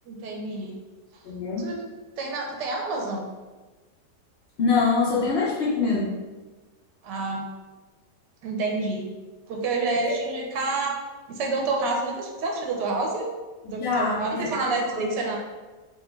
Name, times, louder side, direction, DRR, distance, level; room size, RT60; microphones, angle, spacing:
voice 1, 0.1-0.8 1.6-1.8 2.2-3.3 7.0-7.4 8.4-9.1 9.5-11.0 11.3-13.3 13.6-15.4, right 3 dB, 85° right, 0 dB, 1.3 m, -28 dB
voice 2, 1.2-1.7 4.6-6.2 10.0-10.1 13.6-14.6 14.9-15.0, left 4 dB, 80° left, -6 dB, 0.5 m, -24 dB
4.3 x 2.3 x 3.1 m, 1.3 s
omnidirectional pair, 1.8 m